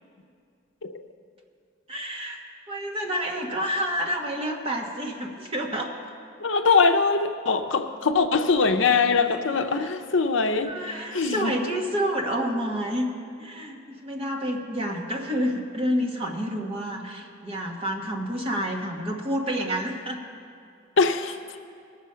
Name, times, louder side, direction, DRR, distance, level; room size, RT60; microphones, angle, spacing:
voice 1, 1.9-2.4 2.7-5.9 8.8-9.0 9.8-9.9 10.7-13.1 13.4-20.2, equal, 30° right, 0 dB, 1.3 m, -29 dB
voice 2, 6.4-10.7 11.1-11.5 21.0-21.4, left 4 dB, 65° left, 7 dB, 0.6 m, -22 dB
19.5 x 7.0 x 5.6 m, 2.3 s
head